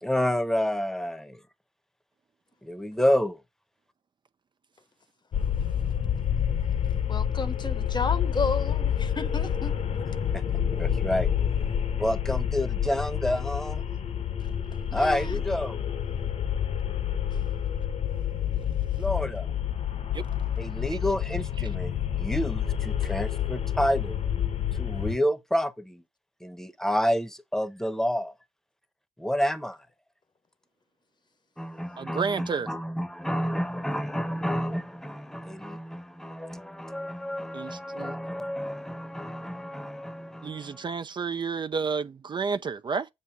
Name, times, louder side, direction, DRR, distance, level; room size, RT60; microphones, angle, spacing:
voice 1, 0.0-1.4 2.6-3.4 10.3-10.4 10.7-11.3 12.0-13.8 14.9-15.8 19.0-19.5 20.6-24.2 24.8-26.0 26.4-28.3 29.2-29.8 31.6-40.9, equal, 5° left, 0.9 m, -29 dB
sound 1, 5.3-25.2, left 9 dB, 65° left, 1.0 m, -28 dB
voice 2, 7.1-9.7 14.9-15.4 23.0-23.1, left 4 dB, 35° left, 0.9 m, -32 dB
voice 3, 32.0-32.7 37.5-38.1 40.4-43.1, right 5 dB, 40° right, 0.5 m, -31 dB
7.4 x 2.7 x 5.7 m
supercardioid pair, 50°, 12 cm